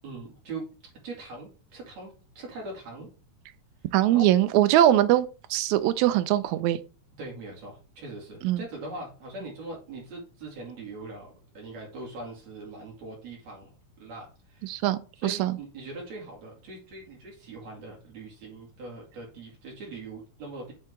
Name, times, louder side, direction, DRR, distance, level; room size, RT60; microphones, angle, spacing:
voice 1, 0.0-0.7 1.0-3.1 4.1-4.3 7.2-13.7 14.0-14.7 15.2-20.7, right 2 dB, 65° right, 3.5 m, -41 dB
voice 2, 3.9-6.8 8.4-8.6 14.6-15.5, right 13 dB, 80° right, 1.8 m, -22 dB
7.4 x 3.7 x 3.6 m
omnidirectional pair, 3.4 m